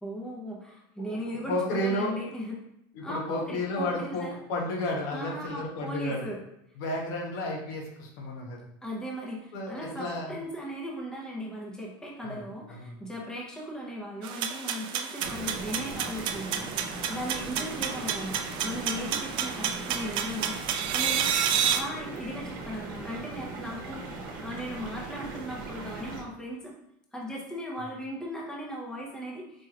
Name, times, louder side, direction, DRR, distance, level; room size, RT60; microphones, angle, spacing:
voice 1, 0.0-2.6 3.0-4.4 5.1-6.4 8.8-20.6 20.9-26.7 27.1-29.7, equal, 5° left, -3 dB, 0.7 m, -37 dB
voice 2, 1.1-2.2 2.9-6.3 6.8-8.6 9.5-10.3 12.2-13.0, left 1 dB, 85° left, -1 dB, 0.9 m, -32 dB
sound 1, 14.2-21.8, right 8 dB, 45° right, 0.4 m, -30 dB
sound 2, 15.2-26.2, right 3 dB, 80° right, 0.9 m, -39 dB
4.4 x 3.0 x 2.4 m, 0.79 s
supercardioid pair, 140°, 11 cm